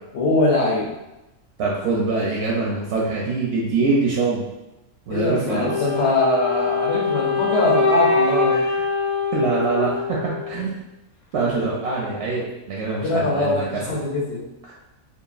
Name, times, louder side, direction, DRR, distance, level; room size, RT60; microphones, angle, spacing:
voice 1, 0.1-0.9 5.1-8.7 13.0-14.5, left 2 dB, 60° left, -3 dB, 0.8 m, -22 dB
voice 2, 1.6-4.4 5.1-5.7 8.5-8.6 9.3-10.7 11.3-14.0, right 3 dB, 65° right, -4 dB, 0.7 m, -24 dB
Wind instrument woodwind instrument, 5.6-10.7, left 3 dB, 80° left, 0.4 m, -23 dB
2.9 x 2.5 x 2.4 m, 0.96 s
omnidirectional pair, 1.5 m